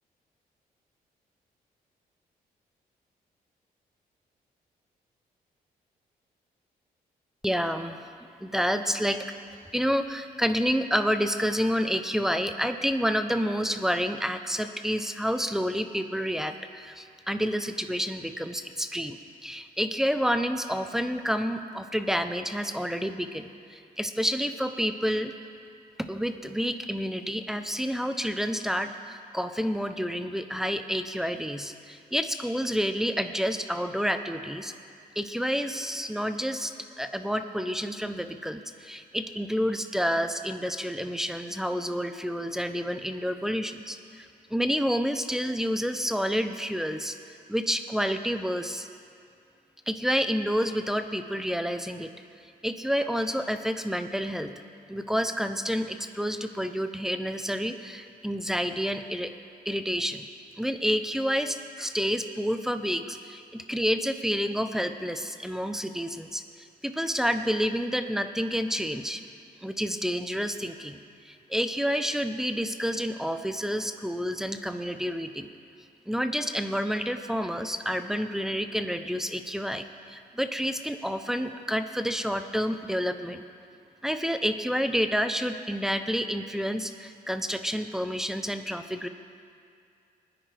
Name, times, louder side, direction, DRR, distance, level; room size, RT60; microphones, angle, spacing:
voice 1, 7.4-8.0 8.4-9.2 9.7-25.3 26.1-34.7 35.2-47.2 47.5-48.9 49.9-52.1 52.6-54.5 54.9-59.3 59.7-60.3 60.6-69.2 69.6-71.0 71.2-75.5 76.1-83.4 84.0-89.1, equal, 5° right, 8 dB, 0.7 m, -29 dB
21.0 x 9.9 x 3.4 m, 2.4 s
cardioid pair, 95°, 16 cm